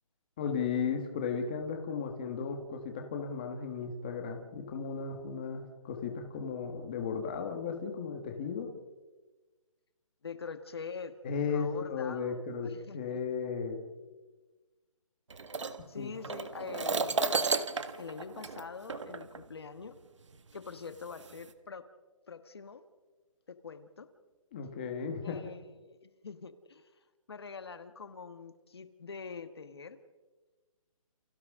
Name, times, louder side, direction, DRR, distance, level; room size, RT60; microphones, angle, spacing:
voice 1, 0.4-8.7 11.2-13.8 16.0-16.1 24.5-25.5, left 6 dB, 15° left, 4 dB, 1.4 m, -35 dB
voice 2, 10.2-11.1 11.5-13.2 15.9-17.4 18.0-20.0 20.5-21.9 22.3-22.8 23.5-24.1 25.2-27.0 27.3-30.0, left 5 dB, 45° left, 10 dB, 1.4 m, -44 dB
sound 1, 15.3-19.4 20.3-20.4 21.1-21.5, right 4 dB, 55° right, 1.7 m, -33 dB
30.0 x 29.5 x 3.7 m, 1.3 s
hypercardioid pair, 180°, 18 cm